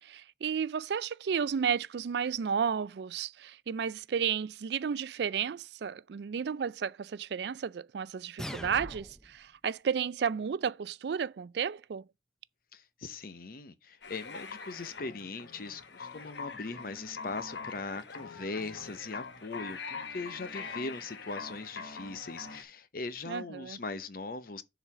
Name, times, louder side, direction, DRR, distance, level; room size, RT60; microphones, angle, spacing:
voice 1, 0.0-12.0 23.3-23.8, right 7 dB, 65° right, 0.4 m, -33 dB
sound 1, 8.4-9.4, equal, 5° left, 0.6 m, -41 dB
voice 2, 12.7-24.6, left 3 dB, 50° left, 0.8 m, -40 dB
sound 2, 14.0-22.6, left 5 dB, 75° left, 1.2 m, -43 dB
7.0 x 4.0 x 6.0 m
head